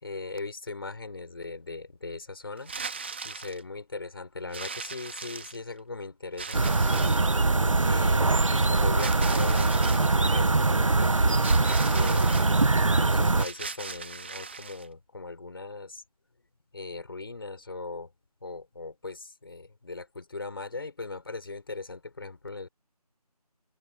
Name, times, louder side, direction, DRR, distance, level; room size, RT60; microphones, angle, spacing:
voice 1, 0.0-2.7 3.2-7.1 7.8-11.4 11.9-12.5 13.0-16.0 16.7-18.1 18.4-22.7, left 3 dB, 35° left, 5.9 m, -39 dB
sound 1, 2.6-3.6 4.5-5.8 6.4-7.3 9.0-10.1 11.4-12.5 13.3-14.9, right 5 dB, 15° right, 2.4 m, -39 dB
sound 2, 6.5-13.5, right 3 dB, 50° right, 1.0 m, -22 dB
open air
figure-of-eight pair, 180°, 20 cm